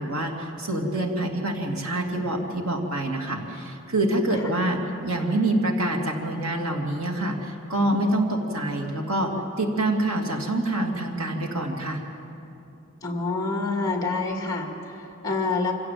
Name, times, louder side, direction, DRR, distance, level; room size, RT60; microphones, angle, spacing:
voice 1, 0.0-9.3 9.6-12.0, right 1 dB, 90° right, 1 dB, 2.7 m, -26 dB
voice 2, 13.0-15.7, left 3 dB, 15° left, 2 dB, 2.1 m, -27 dB
26.0 x 16.5 x 7.7 m, 2.8 s
head